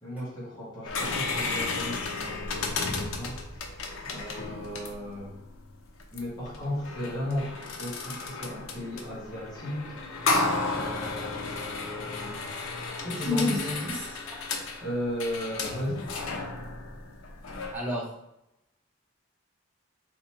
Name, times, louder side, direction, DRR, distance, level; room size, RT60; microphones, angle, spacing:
voice 1, 0.0-3.6 4.0-5.4 6.1-9.8 10.3-12.5 13.0-13.7 14.8-16.0, left 1 dB, 20° left, -9 dB, 1.5 m, -35 dB
sound 1, 0.8-17.7, left 3 dB, 90° left, 0.7 m, -33 dB
voice 2, 13.2-14.0 14.3-14.4 17.7-18.1, equal, 10° right, -7 dB, 1.1 m, -32 dB
4.2 x 2.9 x 4.1 m, 0.83 s
head